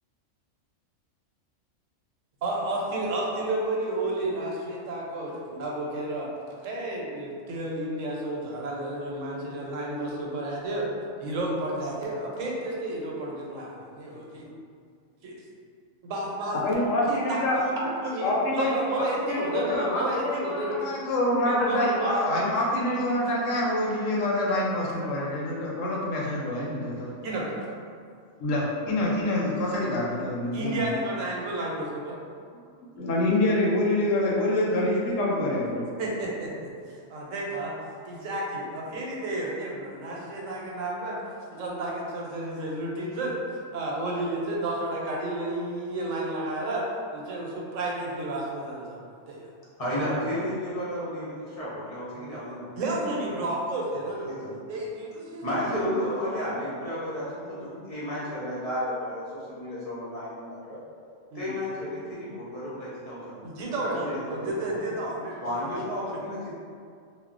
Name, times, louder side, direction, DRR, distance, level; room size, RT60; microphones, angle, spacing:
voice 1, 2.4-6.3 6.6-10.9 11.2-14.6 15.2-15.3 16.0-16.6 17.1-20.9 21.4-22.2 27.2-27.8 30.5-32.2 36.0-37.7 38.0-41.2 41.5-46.8 47.1-49.0 49.3-49.5 52.8-54.3 54.7-56.2 61.3-61.5 63.4-65.7, right 1 dB, 80° right, -3 dB, 1.0 m, -31 dB
voice 2, 16.6-17.6 18.2-27.1 28.4-30.8 33.0-35.8, left 1 dB, 85° left, -4 dB, 1.0 m, -26 dB
voice 3, 49.8-53.4 54.3-54.6 55.4-60.8 61.3-63.4 63.8-64.9 65.4-66.5, equal, 45° left, -9 dB, 0.5 m, -33 dB
2.3 x 2.1 x 3.7 m, 2.3 s
omnidirectional pair, 1.3 m